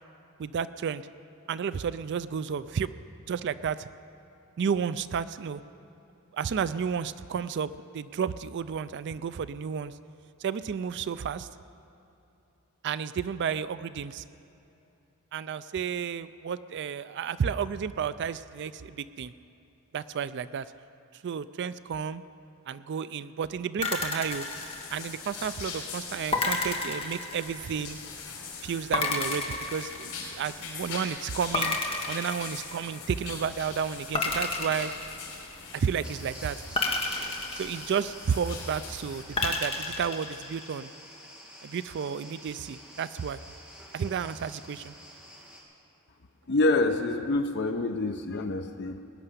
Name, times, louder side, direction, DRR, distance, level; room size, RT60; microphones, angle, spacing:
voice 1, 0.4-1.0 1.5-2.9 3.3-3.9 4.6-5.6 6.3-9.9 10.4-11.5 12.8-14.2 15.3-19.3 19.9-20.7 21.2-22.2 22.7-24.5 24.9-28.0 28.6-31.8 32.1-34.9 35.7-36.6 37.6-40.9 41.6-43.4 43.9-44.9, right 7 dB, 55° right, 15 dB, 0.4 m, -32 dB
sound 1, 23.8-25.4 26.3-27.9 28.9-30.6 31.5-33.1 34.1-35.8 36.7-38.4 39.4-40.8, left 3 dB, 25° left, 1.4 m, -31 dB
sound 2, 24.2-39.2, left 5 dB, 80° left, 4.0 m, -42 dB
sound 3, 36.0-45.6, equal, 5° right, 2.2 m, -48 dB
voice 2, 46.5-49.0, left 2 dB, 50° left, 5 dB, 0.6 m, -26 dB
19.5 x 6.7 x 9.8 m, 2.9 s
head